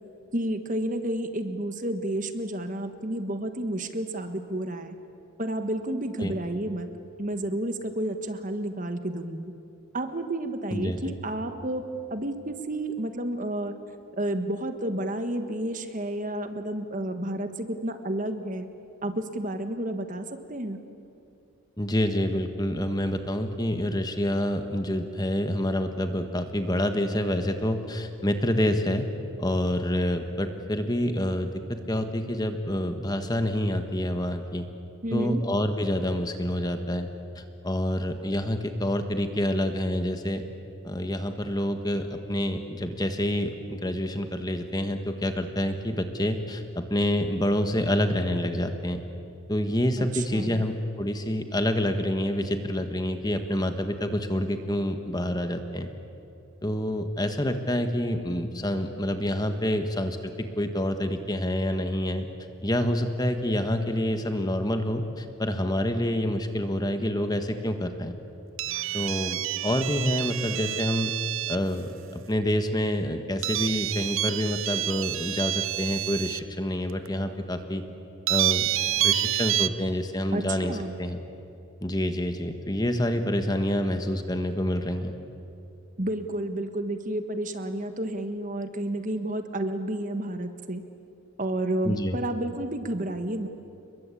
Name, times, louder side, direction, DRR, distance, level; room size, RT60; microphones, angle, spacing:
voice 1, 0.3-4.9 5.4-6.9 7.2-9.5 9.9-11.8 12.1-13.8 14.1-18.7 19.0-20.8 35.0-35.4 50.0-50.6 80.3-81.0 86.0-90.8 91.4-93.5, right 1 dB, 35° right, 8 dB, 1.5 m, -31 dB
voice 2, 21.8-29.0 29.4-34.7 35.1-37.1 37.3-40.4 40.8-49.0 49.5-55.9 56.6-62.3 62.6-68.1 68.9-71.1 71.5-77.8 78.3-78.7 79.0-81.2 81.8-85.1 91.8-92.2, left 1 dB, 20° left, 7 dB, 1.5 m, -27 dB
sound 1, 68.6-71.7 73.4-76.4 77.1-77.2 78.3-79.7, right 13 dB, 70° right, 0.7 m, -28 dB
29.5 x 22.0 x 8.5 m, 2.7 s
head